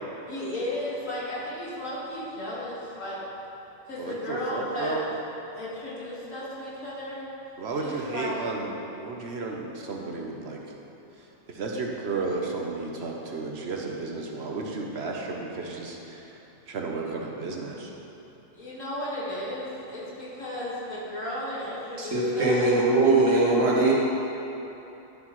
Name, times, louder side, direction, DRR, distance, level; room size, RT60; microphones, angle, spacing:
voice 1, 0.3-3.2 3.9-5.1 5.5-7.3 7.8-8.4 18.5-22.6, left 1 dB, 85° left, -8 dB, 2.4 m, -34 dB
voice 2, 4.0-5.0 7.6-10.6 11.5-16.4 16.7-17.9, right 3 dB, 60° right, 0 dB, 1.1 m, -33 dB
voice 3, 22.0-23.9, right 2 dB, 75° right, -5 dB, 1.9 m, -21 dB
11.0 x 7.3 x 3.1 m, 3.0 s
omnidirectional pair, 1.3 m